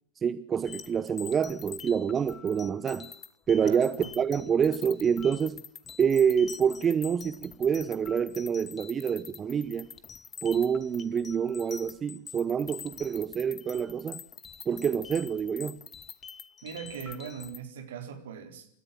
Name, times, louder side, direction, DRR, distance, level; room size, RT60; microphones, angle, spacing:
voice 1, 0.2-3.1 3.5-5.6 6.0-9.9 10.4-14.2 14.7-15.8, right 7 dB, 20° right, 14 dB, 0.9 m, -27 dB
sound 1, 0.7-17.6, left 7 dB, 20° left, 1.3 m, -46 dB
voice 2, 3.6-4.1 16.6-18.7, right 7 dB, 60° right, 5 dB, 4.1 m, -40 dB
28.5 x 14.0 x 7.6 m, 0.67 s
figure-of-eight pair, 90°, 0 cm